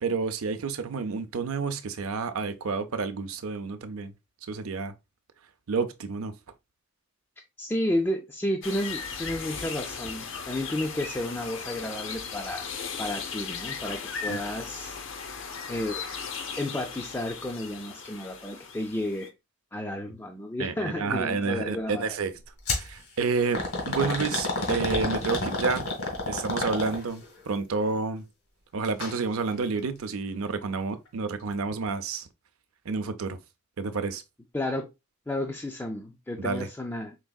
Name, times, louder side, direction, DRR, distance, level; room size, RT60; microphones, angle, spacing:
voice 1, 0.0-4.1 4.5-4.9 5.7-6.3 14.3-14.4 20.6-22.3 22.7-25.9 26.3-28.2 28.7-32.3 32.9-33.4 33.8-34.2 36.4-36.7, right 4 dB, 80° right, 0.5 m, -30 dB
voice 2, 7.6-12.7 13.0-15.0 15.7-16.0 16.6-19.3 19.7-22.2 34.5-34.9 35.3-37.2, left 1 dB, 10° left, 0.4 m, -32 dB
sound 1, 8.6-19.3, left 5 dB, 60° left, 0.6 m, -37 dB
sound 2, 22.7-22.9 23.5-27.2 28.8-29.2 29.5-29.6 30.5-30.6, left 2 dB, 90° left, 1.8 m, -29 dB
4.7 x 3.5 x 2.3 m
head